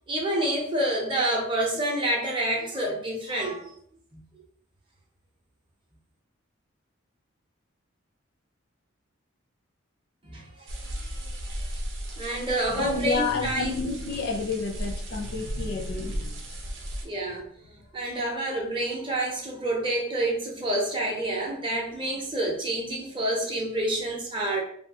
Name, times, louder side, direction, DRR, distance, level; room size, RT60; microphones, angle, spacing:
voice 1, 0.1-3.8 4.1-4.4 10.2-11.8 12.2-13.8 17.0-17.4 17.9-24.6, right 1 dB, 25° right, -1 dB, 0.5 m, -28 dB
sound 1, 10.7-17.0, equal, 70° right, 0.6 m, -35 dB
voice 2, 12.7-16.4, left 4 dB, 55° left, 2 dB, 0.4 m, -30 dB
2.7 x 2.3 x 2.7 m, 0.63 s
head